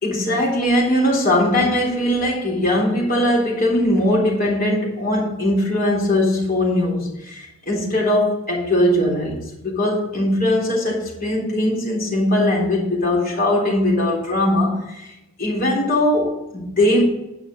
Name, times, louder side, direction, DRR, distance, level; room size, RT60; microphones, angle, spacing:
voice 1, 0.0-17.0, left 1 dB, 40° left, -3 dB, 3.4 m, -20 dB
10.0 x 5.9 x 6.2 m, 0.93 s
head